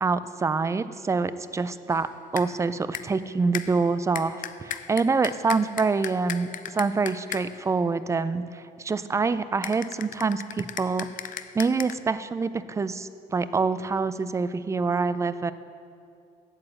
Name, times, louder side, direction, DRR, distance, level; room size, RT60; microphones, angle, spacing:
voice 1, 0.0-11.1 11.5-15.5, right 4 dB, 15° right, 14 dB, 0.4 m, -26 dB
sound 1, 1.9-2.1 2.4-2.6 2.9-3.2 3.5-7.7 9.6-11.9, left 9 dB, 50° left, 0.5 m, -37 dB
8.8 x 7.5 x 7.6 m, 2.5 s
cardioid pair, 110°, 17 cm